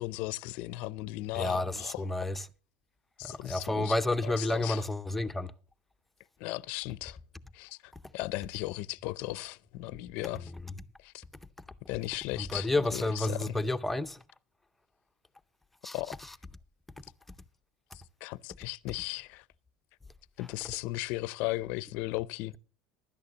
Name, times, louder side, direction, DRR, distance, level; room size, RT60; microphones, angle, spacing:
voice 1, 0.0-2.1 3.2-4.0 4.2-4.8 6.4-7.2 7.5-10.5 11.0-11.2 11.9-13.6 15.9-16.1 18.2-19.4 20.4-22.6, left 19 dB, 60° left, 0.5 m, -36 dB
voice 2, 1.3-2.5 3.2-5.5 12.4-14.2 15.8-16.0, left 2 dB, 5° left, 0.5 m, -30 dB
16.0 x 11.5 x 2.8 m
supercardioid pair, 140°, 3 cm